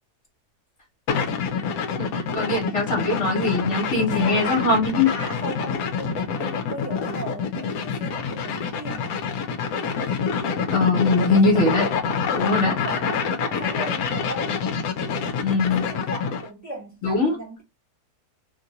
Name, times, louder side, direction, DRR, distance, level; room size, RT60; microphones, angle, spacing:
sound 1, 1.1-16.5, left 6 dB, 70° left, 1.0 m, -27 dB
voice 1, 2.0-5.1 10.7-11.9 12.4-12.7 15.4-15.9 17.0-17.4, left 3 dB, 50° left, 1.3 m, -21 dB
voice 2, 4.1-4.7 5.0-9.1 12.3-14.6 15.5-17.6, right 1 dB, 10° right, 0.9 m, -36 dB
2.9 x 2.5 x 2.7 m
omnidirectional pair, 1.8 m